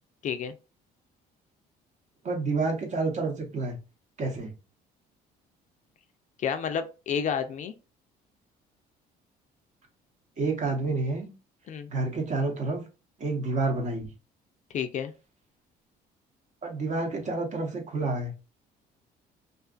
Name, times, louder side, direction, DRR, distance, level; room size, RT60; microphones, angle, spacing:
voice 1, 0.2-0.5 6.4-7.7 11.7-11.9 14.7-15.1, left 7 dB, 45° left, 0.4 m, -30 dB
voice 2, 2.2-3.8 4.2-4.5 10.4-11.3 11.9-12.8 13.2-14.1 16.6-18.3, right 3 dB, 45° right, 0.8 m, -29 dB
2.5 x 2.4 x 2.3 m
cardioid pair, 110°, 17 cm